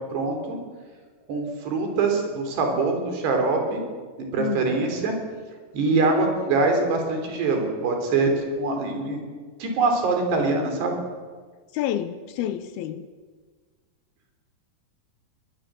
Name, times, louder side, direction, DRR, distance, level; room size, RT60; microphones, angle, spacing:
voice 1, 0.1-0.6 1.3-3.8 4.3-5.2 5.7-9.2 9.6-11.0, right 3 dB, 75° right, 5.9 m, -24 dB
voice 2, 4.4-4.8 11.7-13.1, left 11 dB, 75° left, 2.6 m, -29 dB
21.5 x 20.5 x 7.7 m
omnidirectional pair, 4.8 m